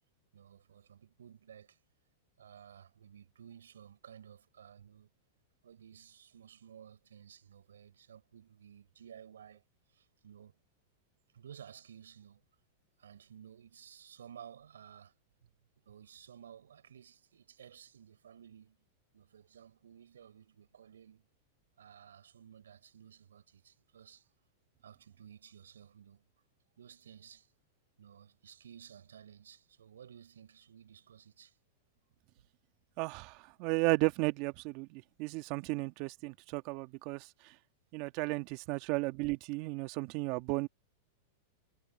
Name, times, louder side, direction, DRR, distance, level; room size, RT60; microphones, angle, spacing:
voice 1, 0.3-1.8 2.4-5.1 5.6-9.6 9.9-10.5 11.3-12.4 13.0-15.1 15.8-18.8 19.1-21.3 21.8-24.3 24.8-26.2 26.8-27.5 28.0-31.6, right 8 dB, 85° right, 5.6 m, -55 dB
voice 2, 33.0-37.5 37.9-40.7, right 24 dB, 50° right, 1.5 m, -34 dB
hypercardioid pair, 115°, 0 cm